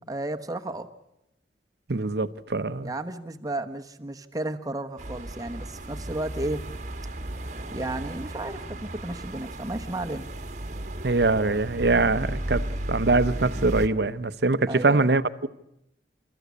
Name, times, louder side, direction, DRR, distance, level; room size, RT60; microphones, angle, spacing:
voice 1, 0.1-0.9 2.8-6.6 7.7-10.2 14.7-15.1, right 2 dB, 20° right, 1.2 m, -33 dB
voice 2, 1.9-2.9 11.0-12.6 12.9-15.5, right 3 dB, 65° right, 0.8 m, -23 dB
sound 1, 5.0-13.9, right 1 dB, 45° right, 1.3 m, -34 dB
29.5 x 14.0 x 8.4 m
head